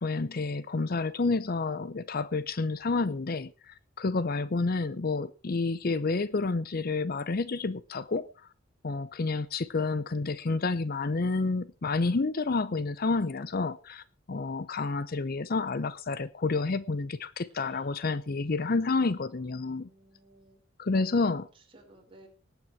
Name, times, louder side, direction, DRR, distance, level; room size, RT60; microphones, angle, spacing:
voice 1, 0.0-8.3 8.8-19.9 20.8-21.5, left 3 dB, 45° left, 0.6 m, -29 dB
voice 2, 19.0-20.6 21.1-21.4 21.7-22.3, right 2 dB, 25° right, 5.3 m, -56 dB
19.0 x 9.2 x 4.5 m
head